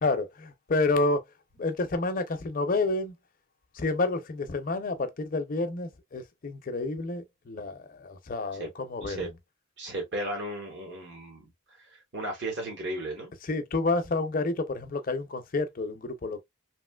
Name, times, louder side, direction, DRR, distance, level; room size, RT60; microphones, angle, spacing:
voice 1, 0.0-1.2 1.6-3.1 3.7-9.3 13.4-16.4, left 3 dB, 40° left, 0.5 m, -29 dB
voice 2, 9.0-9.3 9.8-13.3, right 1 dB, 55° right, 1.2 m, -35 dB
3.1 x 2.8 x 2.2 m
head